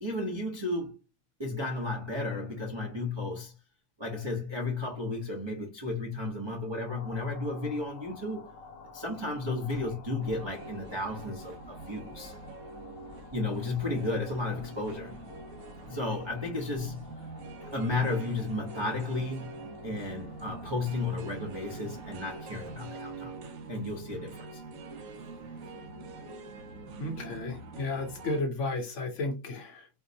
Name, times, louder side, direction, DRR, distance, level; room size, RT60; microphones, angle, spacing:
voice 1, 0.0-1.0 1.4-3.5 4.0-8.4 8.9-12.3 13.3-15.2 15.9-17.1 17.6-23.4 23.7-24.6, left 2 dB, 35° right, 0.4 m, -33 dB
sound 1, 6.9-23.0, left 4 dB, 80° left, 1.1 m, -51 dB
sound 2, 10.2-28.4, right 3 dB, 65° right, 1.0 m, -44 dB
voice 2, 27.0-29.9, left 2 dB, 60° left, 0.9 m, -33 dB
4.3 x 2.0 x 2.6 m
omnidirectional pair, 1.7 m